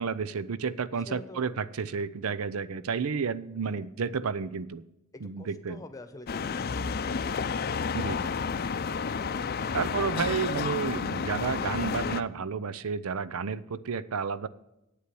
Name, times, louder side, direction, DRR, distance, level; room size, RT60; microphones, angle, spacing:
voice 1, 0.0-4.8 5.2-5.8 7.9-8.3 9.7-14.5, right 5 dB, 85° right, 17 dB, 0.6 m, -31 dB
voice 2, 1.0-1.6 3.6-3.9 5.1-7.6 8.8-9.8, left 2 dB, 15° left, 8 dB, 1.0 m, -48 dB
sound 1, 6.3-12.2, left 5 dB, 45° left, 0.5 m, -31 dB
8.4 x 8.3 x 7.6 m, 0.92 s
head